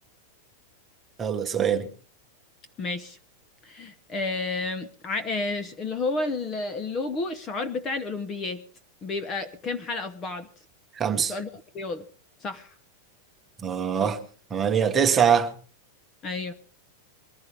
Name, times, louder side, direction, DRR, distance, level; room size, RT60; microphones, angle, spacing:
voice 1, 1.2-1.9 10.9-11.3 13.6-14.2 14.5-15.5, right 7 dB, 15° right, 1.2 m, -23 dB
voice 2, 2.8-3.2 3.6-8.6 9.0-10.5 11.1-11.5 11.7-12.0 12.4-12.7 14.0-14.1 16.2-16.5, left 3 dB, 15° left, 0.9 m, -31 dB
23.0 x 15.0 x 3.4 m
supercardioid pair, 175°, 0 cm